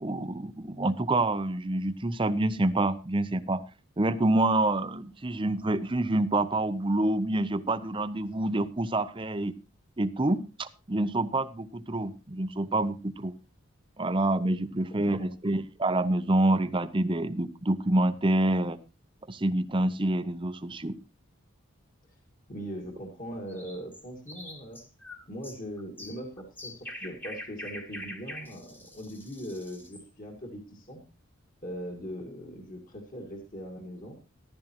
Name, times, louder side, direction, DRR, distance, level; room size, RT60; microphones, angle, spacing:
voice 1, 0.0-3.6 4.0-9.5 10.0-13.3 14.0-18.8 19.3-20.9, right 2 dB, 25° right, 12 dB, 0.6 m, -27 dB
voice 2, 22.5-24.8 25.3-31.0 31.6-34.2, equal, 40° left, 1 dB, 2.0 m, -40 dB
sound 1, 23.5-30.1, left 1 dB, 10° left, 1.3 m, -44 dB
14.0 x 12.5 x 3.0 m, 0.31 s
head